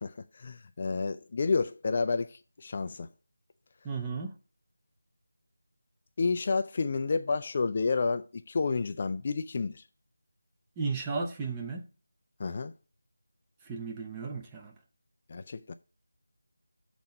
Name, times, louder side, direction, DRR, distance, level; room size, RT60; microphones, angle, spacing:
voice 1, 0.0-3.1 6.2-9.8 12.4-12.7 15.3-15.7, left 4 dB, 35° left, 0.4 m, -30 dB
voice 2, 3.8-4.4 10.8-11.8 13.6-14.7, right 4 dB, 10° right, 0.8 m, -34 dB
7.6 x 4.0 x 5.9 m
figure-of-eight pair, 170°, 0 cm